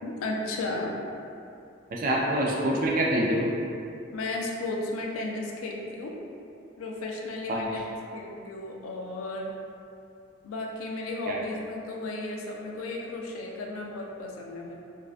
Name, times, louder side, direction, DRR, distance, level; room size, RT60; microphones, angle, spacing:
voice 1, 0.0-1.0 4.1-6.2 6.8-7.8 8.1-9.5 10.4-14.8, left 2 dB, 90° left, 0 dB, 0.4 m, -34 dB
voice 2, 1.9-3.5 7.5-7.8 11.3-11.4, right 1 dB, 45° right, -2 dB, 0.3 m, -26 dB
2.5 x 2.1 x 2.4 m, 2.5 s
head